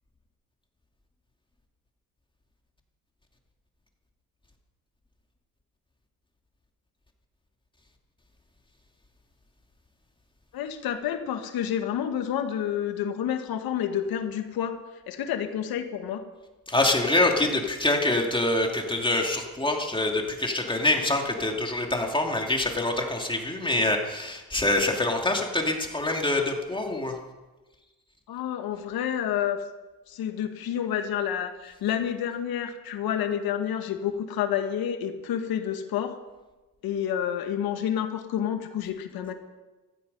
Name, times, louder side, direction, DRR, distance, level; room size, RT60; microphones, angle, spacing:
voice 1, 10.5-14.8 15.1-16.2 28.3-29.6 30.1-36.2 36.8-39.3, left 9 dB, 75° left, 6 dB, 1.7 m, -29 dB
voice 2, 16.7-27.1, left 2 dB, 15° left, 2 dB, 2.4 m, -25 dB
15.5 x 15.0 x 5.5 m, 1.2 s
cardioid pair, 95°, 37 cm